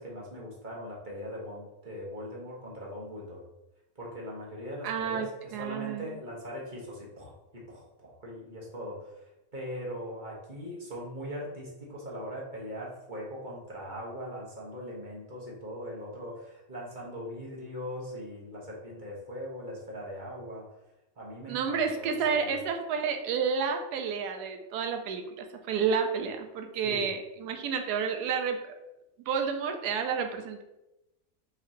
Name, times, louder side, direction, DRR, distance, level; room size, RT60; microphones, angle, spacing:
voice 1, 0.0-3.4 3.9-5.3 5.6-20.7 21.2-22.6 26.8-27.1, equal, 35° right, -3 dB, 1.1 m, -40 dB
voice 2, 4.8-6.0 21.5-28.6 29.3-30.6, right 6 dB, 85° right, 5 dB, 1.2 m, -30 dB
5.7 x 3.2 x 2.7 m, 0.93 s
omnidirectional pair, 1.7 m